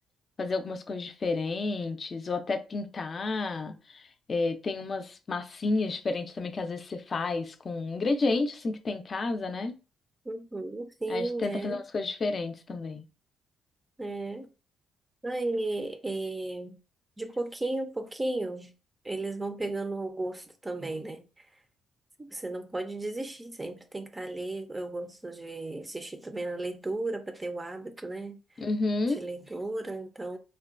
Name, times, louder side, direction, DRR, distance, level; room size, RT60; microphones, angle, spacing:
voice 1, 0.4-4.0 4.3-9.8 11.1-13.0 28.6-29.2, left 3 dB, 40° left, 0.5 m, -31 dB
voice 2, 10.3-11.8 14.0-14.5 15.2-16.8 17.2-18.7 19.0-21.5 22.2-28.6 29.1-30.4, right 2 dB, 20° right, 0.5 m, -34 dB
3.7 x 2.2 x 2.4 m
cardioid pair, 90°, 0 cm